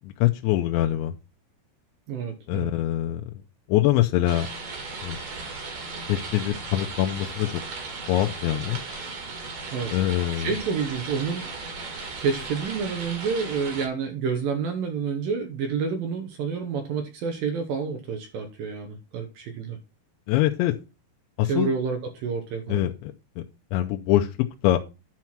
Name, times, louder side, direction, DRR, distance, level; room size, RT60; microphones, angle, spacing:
voice 1, 0.0-1.1 2.5-3.2 3.7-4.5 5.0-5.2 6.1-7.5 8.1-8.8 9.9-10.5 20.3-20.7 21.4-21.7 22.7-23.4 23.7-24.3 24.6-24.8, left 14 dB, 85° left, 4 dB, 3.0 m, -24 dB
voice 2, 2.1-2.7 9.7-9.9 10.3-11.5 12.2-19.8 21.5-22.9, right 5 dB, 70° right, 5 dB, 2.4 m, -29 dB
sound 1, 4.3-13.9, right 4 dB, 45° right, 2.7 m, -36 dB
10.5 x 4.6 x 5.9 m, 0.29 s
omnidirectional pair, 5.1 m